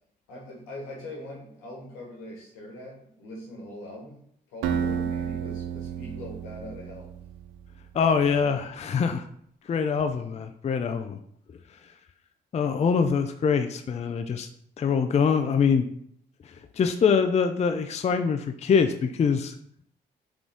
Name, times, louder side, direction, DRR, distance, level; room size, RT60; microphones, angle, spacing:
voice 1, 0.3-7.1, left 1 dB, 85° left, -1 dB, 1.2 m, -41 dB
Acoustic guitar, 4.6-7.6, right 8 dB, 80° right, 0.4 m, -31 dB
voice 2, 7.9-9.2 9.7-11.2 12.5-14.5 14.8-15.9 16.8-19.5, left 6 dB, 35° left, 7 dB, 0.4 m, -24 dB
3.7 x 3.6 x 3.5 m, 0.67 s
hypercardioid pair, 50°, 21 cm